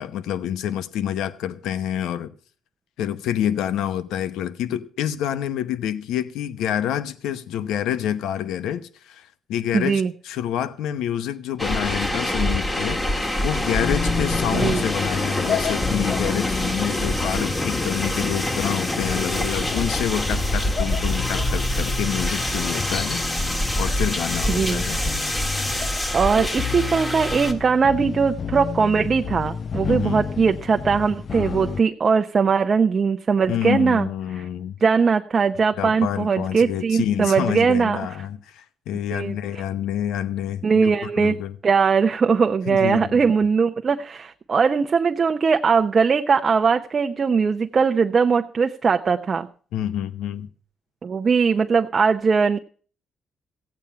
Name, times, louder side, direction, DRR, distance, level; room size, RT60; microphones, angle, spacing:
voice 1, 0.0-2.3 3.0-13.0 13.4-23.2 23.8-25.0 26.4-26.6 29.9-30.2 33.5-34.8 35.8-41.5 42.7-43.2 49.7-50.5, left 10 dB, 90° left, 0.8 m, -27 dB
voice 2, 9.7-10.1 14.5-14.8 24.5-24.8 26.1-34.1 34.3-34.5 34.8-38.0 39.1-39.4 40.6-41.3 41.6-49.5 51.0-52.6, right 5 dB, 40° right, 0.7 m, -20 dB
sound 1, 11.6-27.5, left 1 dB, 20° left, 1.9 m, -25 dB
sound 2, 13.8-31.8, left 6 dB, 45° left, 0.5 m, -31 dB
15.5 x 8.8 x 5.6 m
cardioid pair, 90°, 0 cm